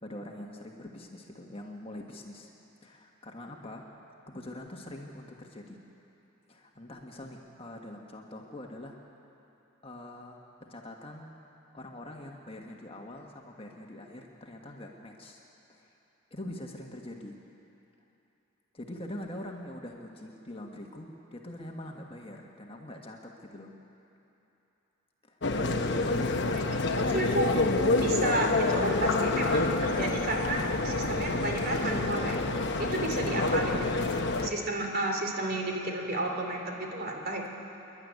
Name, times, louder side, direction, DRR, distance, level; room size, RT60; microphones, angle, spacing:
voice 1, 0.0-2.5 2.8-3.9 4.3-5.8 6.5-9.0 9.8-11.4 11.7-15.4 15.7-15.9 16.3-17.4 18.7-23.7 25.2-26.4 33.3-33.6, left 1 dB, 25° left, 0 dB, 1.6 m, -43 dB
sound 1, 25.4-34.5, left 2 dB, 50° left, 1.0 m, -28 dB
voice 2, 26.8-27.5 27.9-32.4 32.8-37.5, right 2 dB, 45° right, 1 dB, 2.8 m, -32 dB
28.0 x 11.5 x 9.5 m, 2.9 s
head